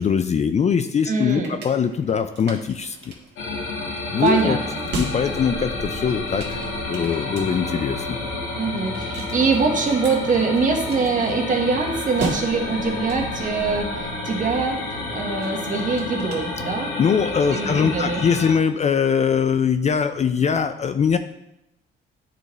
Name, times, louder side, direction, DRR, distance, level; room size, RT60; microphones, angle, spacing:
voice 1, 0.0-3.1 4.1-4.6 5.0-6.6 6.9-8.2 17.0-21.2, left 6 dB, 35° left, 9 dB, 0.4 m, -22 dB
sound 1, 0.9-17.1, right 3 dB, 60° right, 1.5 m, -38 dB
voice 2, 1.0-1.6 4.2-4.9 8.6-14.8 15.1-16.9 17.5-18.2, right 4 dB, 40° right, 1 dB, 1.3 m, -23 dB
sound 2, 3.4-18.5, left 2 dB, 80° left, 1.6 m, -30 dB
10.0 x 4.0 x 3.1 m, 0.85 s
cardioid pair, 90°, 20 cm